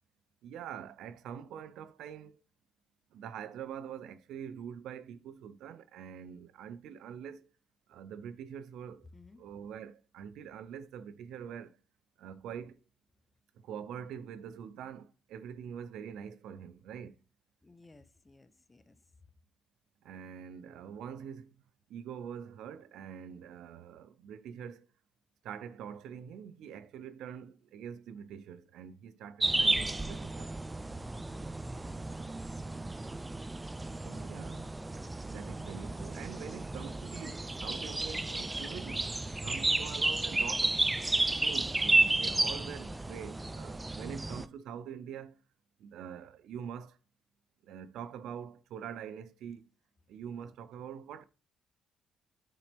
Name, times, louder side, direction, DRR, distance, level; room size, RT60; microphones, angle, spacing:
voice 1, 0.4-2.4 3.1-7.5 7.9-9.1 9.4-11.8 12.2-12.8 13.5-17.2 20.0-21.6 21.9-24.9 25.4-30.5 34.0-34.7 35.3-39.1 39.4-40.8 41.4-45.4 45.8-47.0 47.6-49.7 50.1-51.2, right 8 dB, 85° right, 0.5 m, -44 dB
voice 2, 9.1-9.4 17.6-19.0 31.1-33.0 39.4-39.7, left 2 dB, 20° left, 0.8 m, -58 dB
sound 1, 29.4-44.5, right 2 dB, 15° right, 0.4 m, -32 dB
9.2 x 4.0 x 3.4 m
cardioid pair, 90°, 0 cm